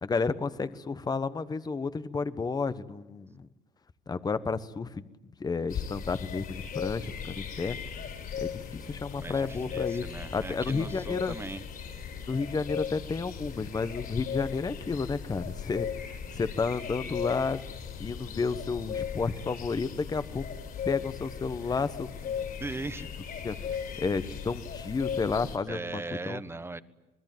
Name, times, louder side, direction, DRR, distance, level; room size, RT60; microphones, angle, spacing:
voice 1, 0.0-3.5 4.1-5.0 5.4-7.8 8.4-11.4 12.3-17.6 18.0-20.4 20.9-22.4 23.0-23.1 23.4-23.6 24.0-26.4, left 4 dB, 25° left, 13 dB, 1.1 m, -31 dB
sound 1, 5.7-25.6, left 7 dB, 60° left, 5.9 m, -37 dB
voice 2, 9.1-11.6 22.6-23.1 25.7-26.8, right 2 dB, 15° right, 13 dB, 1.2 m, -39 dB
27.0 x 21.0 x 9.3 m, 1.0 s
cardioid pair, 110°, 17 cm